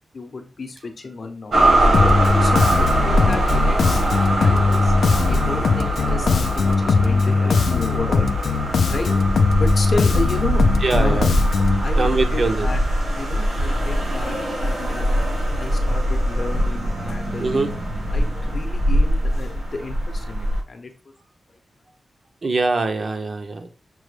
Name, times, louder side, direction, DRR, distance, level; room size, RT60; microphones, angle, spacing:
voice 1, 0.1-1.5 2.4-5.0 5.3-8.3 8.9-9.1 9.6-10.6 10.9-11.2 11.8-12.8 13.1-15.1 15.5-17.6 18.1-20.9, left 3 dB, 45° left, 5 dB, 0.6 m, -31 dB
sound 1, 1.5-20.6, right 1 dB, 70° right, 1.2 m, -22 dB
Bass guitar, 1.9-11.8, left 4 dB, 80° left, 0.3 m, -20 dB
voice 2, 8.8-9.2 10.8-11.3 11.7-12.7 17.4-17.7 22.4-23.7, right 3 dB, 40° right, 7 dB, 0.5 m, -23 dB
6.0 x 2.1 x 3.2 m, 0.34 s
wide cardioid pair, 165°, 0 cm